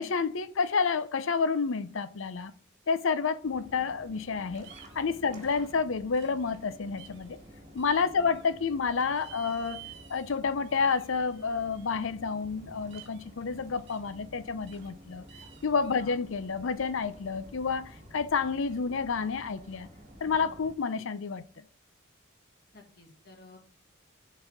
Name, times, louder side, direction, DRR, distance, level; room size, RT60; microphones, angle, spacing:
voice 1, 0.0-2.5 2.9-7.4 7.7-15.2 15.6-19.9 20.2-21.6, left 5 dB, 80° left, 0.6 m, -30 dB
sound 1, 3.4-20.7, equal, 35° right, 1.6 m, -51 dB
sound 2, 4.6-5.2 6.1-6.6 7.0-7.2 7.8-8.5 9.1-10.4 10.6-12.0 12.9-13.3 13.9-14.1 14.7-14.9 15.3-16.1, right 10 dB, 55° right, 0.9 m, -52 dB
voice 2, 22.7-23.6, left 2 dB, 50° left, 1.6 m, -51 dB
7.1 x 4.1 x 5.1 m
head